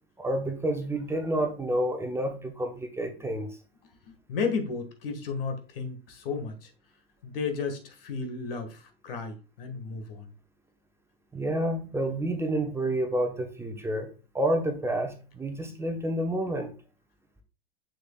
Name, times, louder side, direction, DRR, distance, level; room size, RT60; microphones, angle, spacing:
voice 1, 0.2-3.5 11.3-16.7, right 1 dB, 10° right, 0.9 m, -29 dB
voice 2, 4.1-6.7 7.2-10.3, left 5 dB, 60° left, 1.6 m, -33 dB
7.1 x 6.5 x 2.3 m
figure-of-eight pair, 95°, 32 cm